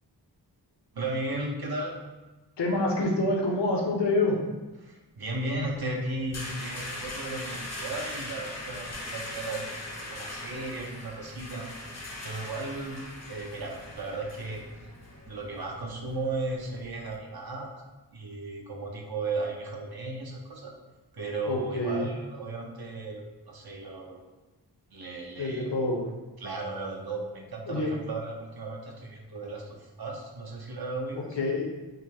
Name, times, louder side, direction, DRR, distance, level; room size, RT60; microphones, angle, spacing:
voice 1, 0.9-1.9 4.8-11.7 12.2-13.0 13.3-14.6 15.3-17.7 18.1-20.7 21.1-24.2 24.9-25.7 26.4-31.4, right 2 dB, 55° right, 0 dB, 0.7 m, -35 dB
voice 2, 2.6-4.4 21.4-22.1 25.4-26.1 27.7-27.9 31.4-31.7, left 2 dB, 70° left, -1 dB, 0.8 m, -27 dB
sound 1, 5.5-17.2, left 1 dB, 40° left, 0.6 m, -41 dB
5.6 x 2.0 x 3.4 m, 1.1 s
wide cardioid pair, 75°, 43 cm